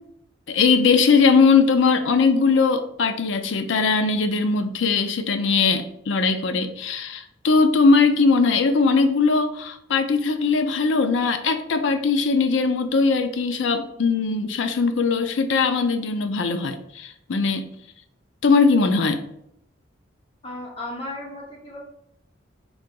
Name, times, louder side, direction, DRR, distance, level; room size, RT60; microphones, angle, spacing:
voice 1, 0.5-17.7 18.4-19.2, left 4 dB, 75° left, 8 dB, 0.4 m, -20 dB
voice 2, 20.4-21.8, left 2 dB, 30° left, -3 dB, 1.0 m, -35 dB
3.9 x 2.8 x 3.7 m, 0.76 s
head